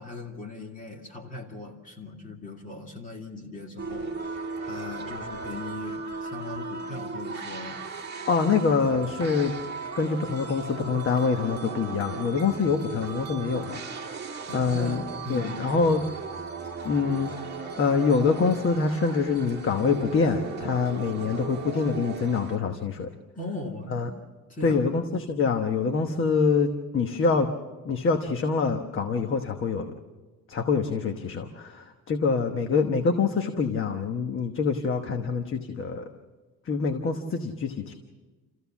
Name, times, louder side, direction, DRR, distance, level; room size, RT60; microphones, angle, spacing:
voice 1, 0.0-7.8 14.5-15.6 23.4-24.0 24.5-24.9, left 2 dB, 25° left, 1 dB, 2.4 m, -39 dB
sound 1, 3.8-22.6, right 4 dB, 35° right, 2.1 m, -37 dB
voice 2, 8.3-9.5 9.9-13.8 14.5-15.0 15.3-16.0 16.8-17.3 17.8-23.1 23.9-24.1 24.6-27.5 27.8-29.9 30.5-36.0 36.7-37.9, left 5 dB, 40° left, 5 dB, 1.2 m, -25 dB
28.5 x 15.0 x 7.2 m, 1.3 s
cardioid pair, 180°, 32 cm